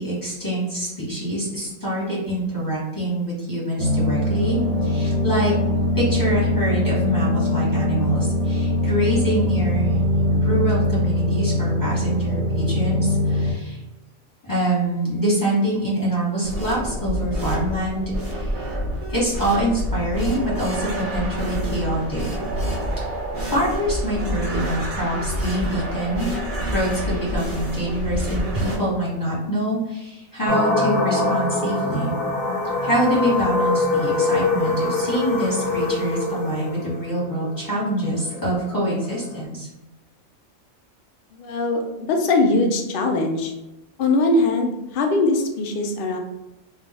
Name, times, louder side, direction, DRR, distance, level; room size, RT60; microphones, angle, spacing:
voice 1, 0.0-5.5 5.9-9.9 10.3-13.8 14.4-18.7 19.1-22.2 23.5-26.3 26.7-32.1 32.8-39.7, right 1 dB, 15° left, -7 dB, 1.0 m, -25 dB
sound 1, 3.8-13.5, left 1 dB, 65° right, 0.8 m, -22 dB
sound 2, 16.4-28.8, equal, 50° right, 0.4 m, -28 dB
sound 3, 30.5-39.4, left 3 dB, 50° left, 0.9 m, -24 dB
voice 2, 41.3-43.5 44.0-46.2, left 2 dB, 70° left, 3 dB, 0.5 m, -21 dB
2.4 x 2.3 x 4.0 m, 0.96 s
omnidirectional pair, 1.4 m